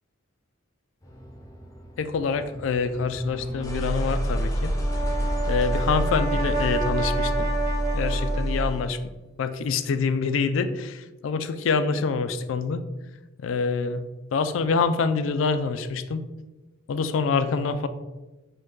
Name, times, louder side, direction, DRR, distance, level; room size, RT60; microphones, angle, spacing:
sound 1, 1.0-8.9, equal, 15° left, 0.5 m, -28 dB
voice 1, 2.0-4.7 5.5-7.5 7.9-9.0 9.4-12.8 13.4-14.0 14.3-16.2 16.9-17.9, left 5 dB, 75° left, 11 dB, 0.3 m, -26 dB
Brass instrument, 4.6-8.9, right 3 dB, 50° right, 0.8 m, -30 dB
5.1 x 2.2 x 3.7 m, 1.1 s
head